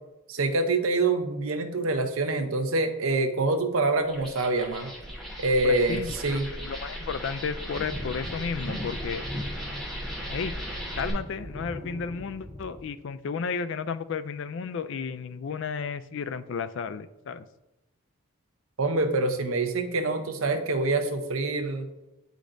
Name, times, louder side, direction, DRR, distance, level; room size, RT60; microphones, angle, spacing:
voice 1, 0.3-4.9 5.4-6.5 18.8-21.9, right 2 dB, 70° right, 7 dB, 0.7 m, -26 dB
sound 1, 4.0-11.1, equal, ahead, 1.2 m, -37 dB
voice 2, 5.6-9.2 10.3-10.5 11.0-17.4, left 5 dB, 55° left, 13 dB, 0.3 m, -33 dB
sound 2, 7.7-12.8, equal, 35° right, 1.9 m, -40 dB
8.7 x 5.1 x 2.6 m, 0.98 s
head